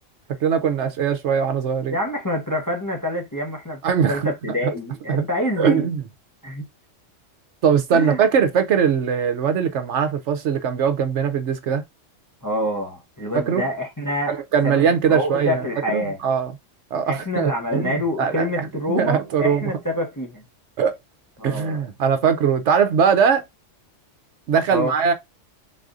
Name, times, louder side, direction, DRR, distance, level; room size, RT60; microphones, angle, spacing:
voice 1, 0.4-1.9 3.8-4.3 4.6-4.7 5.1-5.2 5.6-6.0 7.6-11.8 13.3-13.6 14.3-15.6 15.9-16.5 16.9-19.7 20.8-21.0 21.4-23.4 24.5-25.1, right 7 dB, 70° right, 0.9 m, -21 dB
voice 2, 1.9-3.8 4.1-5.9 6.4-6.7 7.9-8.2 12.4-14.4 14.6-16.2 17.1-20.4 21.4-21.8 24.7-25.0, equal, 20° left, 0.7 m, -26 dB
4.0 x 2.6 x 3.6 m
omnidirectional pair, 1.3 m